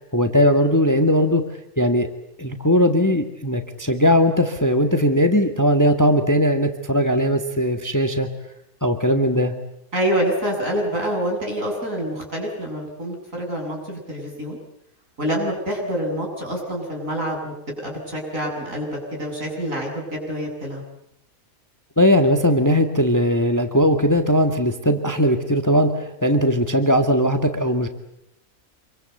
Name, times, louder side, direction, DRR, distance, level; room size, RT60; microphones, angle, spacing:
voice 1, 0.0-1.4 1.8-2.1 2.4-8.3 8.8-9.5 22.0-27.9, equal, 10° left, 6 dB, 1.7 m, -19 dB
voice 2, 9.9-14.6 15.2-20.8, equal, 60° right, 0 dB, 8.2 m, -26 dB
27.0 x 23.5 x 8.0 m, 0.79 s
omnidirectional pair, 1.5 m